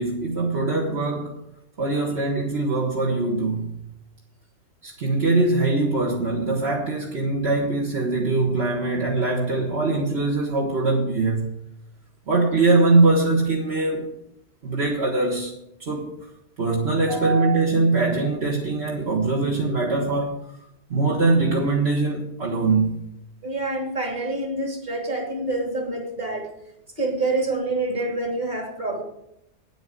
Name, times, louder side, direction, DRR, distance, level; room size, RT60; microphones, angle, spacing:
voice 1, 0.0-1.4 1.8-3.8 4.8-11.6 12.3-14.1 14.6-15.5 15.8-16.2 16.6-20.4 20.9-23.0, right 3 dB, 65° right, 1.8 m, -22 dB
voice 2, 17.0-17.5 23.4-26.5 27.0-29.0, right 2 dB, 40° right, 2.9 m, -27 dB
9.3 x 9.1 x 7.5 m
omnidirectional pair, 1.1 m